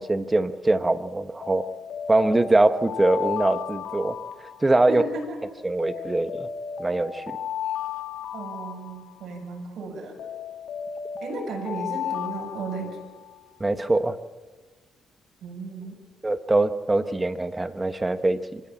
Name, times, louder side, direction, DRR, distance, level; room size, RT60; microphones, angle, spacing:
voice 1, 0.0-1.7 2.1-4.2 4.6-5.0 5.6-6.5 6.8-7.2 13.6-14.1 16.2-18.6, right 2 dB, 15° right, 10 dB, 1.2 m, -23 dB
Alarm, 1.4-5.1 5.8-9.5 10.2-13.4, left 8 dB, 75° left, 1.9 m, -35 dB
voice 2, 4.9-5.4 8.3-10.2 11.2-13.0 15.4-15.9, right 3 dB, 65° right, 0 dB, 7.1 m, -34 dB
26.0 x 15.5 x 7.3 m, 1.3 s
cardioid pair, 90°, 0 cm